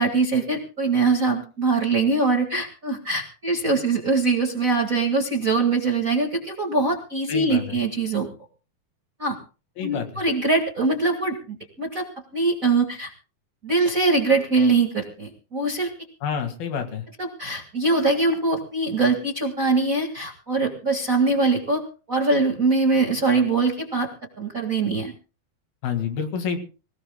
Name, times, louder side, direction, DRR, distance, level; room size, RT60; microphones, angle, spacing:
voice 1, 0.0-8.3 9.2-9.4 9.8-12.0 12.3-13.1 13.6-15.9 17.2-21.8 22.1-24.1 24.4-25.1, right 3 dB, 35° right, 2 dB, 1.3 m, -22 dB
voice 2, 7.3-7.8 9.8-10.2 16.2-17.1 25.8-26.6, left 7 dB, 85° left, 6 dB, 3.7 m, -28 dB
25.0 x 17.0 x 2.2 m, 0.35 s
omnidirectional pair, 4.1 m